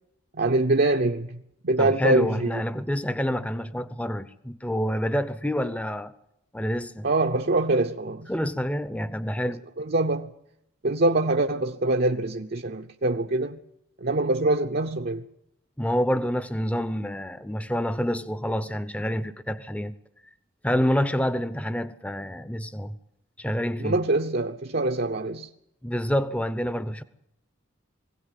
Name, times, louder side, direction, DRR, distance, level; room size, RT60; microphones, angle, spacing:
voice 1, 0.3-1.4 1.6-2.6 7.0-8.3 9.8-10.3 10.8-13.6 14.0-15.2 23.8-25.5, right 2 dB, 50° right, 0.7 m, -24 dB
voice 2, 1.8-6.1 6.5-7.1 8.3-9.6 15.8-19.9 20.6-22.9 23.4-24.0 25.8-27.0, equal, 5° left, 0.7 m, -27 dB
22.0 x 17.0 x 8.3 m
head